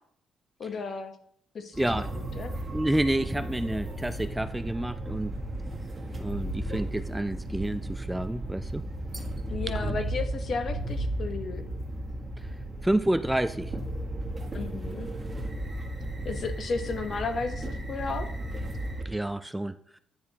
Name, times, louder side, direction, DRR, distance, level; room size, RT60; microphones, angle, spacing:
voice 1, 0.6-1.1 1.5-1.8 2.2-2.5 9.5-11.7 14.5-15.1 16.2-18.3, left 4 dB, 55° left, 7 dB, 0.9 m, -33 dB
sound 1, 1.7-19.0, right 1 dB, 25° right, 1.2 m, -34 dB
voice 2, 1.8-2.1 2.7-5.3 6.2-8.8 9.7-10.0 12.4-12.5 12.8-13.7 19.0-19.8, right 1 dB, 5° right, 12 dB, 0.3 m, -29 dB
10.0 x 4.6 x 2.8 m, 0.66 s
cardioid pair, 90°, 0 cm